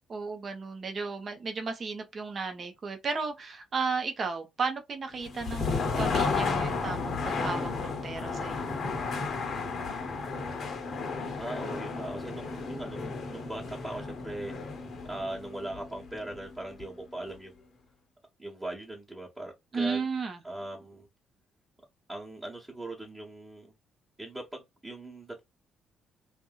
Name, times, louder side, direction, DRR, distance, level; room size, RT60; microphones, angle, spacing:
voice 1, 0.1-8.8 19.7-20.4, right 4 dB, 40° right, 0.9 m, -34 dB
sound 1, 5.2-17.0, left 4 dB, 50° left, 0.8 m, -33 dB
voice 2, 11.4-14.5 15.0-17.7 18.4-20.0 20.4-21.1 22.1-23.7 24.2-25.4, right 1 dB, 15° right, 1.1 m, -40 dB
2.8 x 2.6 x 2.4 m
figure-of-eight pair, 45°, 0 cm